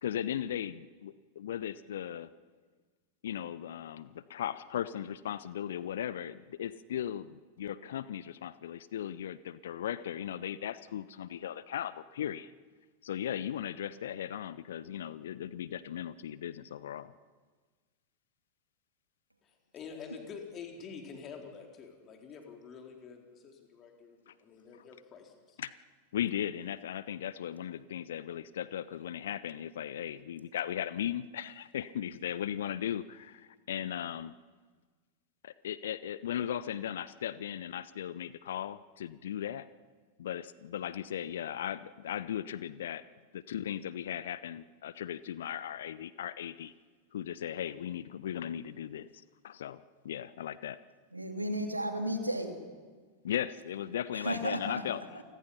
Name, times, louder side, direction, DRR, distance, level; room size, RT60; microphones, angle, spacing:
voice 1, 0.0-2.3 3.2-12.5 13.0-17.1 24.3-24.4 25.6-25.7 26.1-34.3 35.4-39.7 40.2-43.0 43.3-46.7 47.1-50.8 53.2-55.2, left 10 dB, 60° left, 17 dB, 0.6 m, -37 dB
voice 2, 19.4-25.6, left 6 dB, 30° left, 2 dB, 4.1 m, -47 dB
voice 3, 51.1-52.5 54.1-54.8 55.1-55.2, right 1 dB, 85° right, 5 dB, 2.5 m, -33 dB
28.5 x 20.5 x 5.7 m, 1.5 s
figure-of-eight pair, 90°, 0 cm